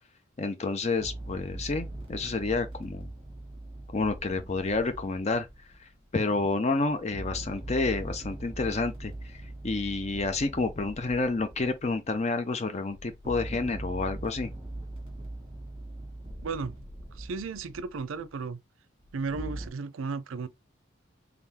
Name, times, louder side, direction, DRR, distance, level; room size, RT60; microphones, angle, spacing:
voice 1, 0.4-3.1 3.9-5.5 5.8-14.5, left 3 dB, 35° left, 0.5 m, -29 dB
sound 1, 0.8-6.1 6.8-12.2 12.9-18.3 19.0-19.7, right 1 dB, 25° right, 1.4 m, -41 dB
voice 2, 16.4-16.7 17.1-18.6 19.1-20.5, right 4 dB, 80° right, 0.5 m, -34 dB
3.8 x 3.4 x 2.8 m
head